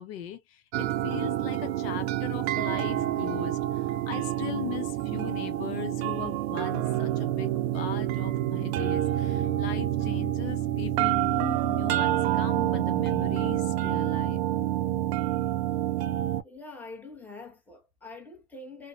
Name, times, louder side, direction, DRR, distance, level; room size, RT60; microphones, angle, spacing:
voice 1, 0.0-14.4, left 11 dB, 65° left, 0.7 m, -39 dB
sound 1, 0.7-16.4, right 13 dB, 75° right, 0.5 m, -28 dB
voice 2, 16.4-18.9, left 3 dB, 5° left, 1.0 m, -44 dB
2.7 x 2.1 x 2.4 m
hypercardioid pair, 100°, 32 cm